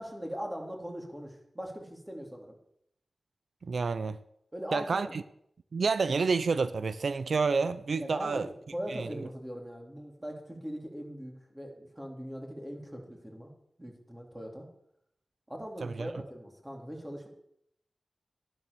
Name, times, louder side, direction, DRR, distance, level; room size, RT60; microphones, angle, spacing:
voice 1, 0.0-2.6 4.5-5.1 8.0-8.4 8.7-13.5 13.8-14.7 15.5-17.3, equal, 10° right, 3.6 m, -40 dB
voice 2, 3.6-4.2 4.7-5.2 5.7-8.5 8.9-9.1 15.8-16.1, right 4 dB, 70° right, 0.6 m, -29 dB
12.5 x 10.5 x 6.9 m
wide cardioid pair, 75°, 0 cm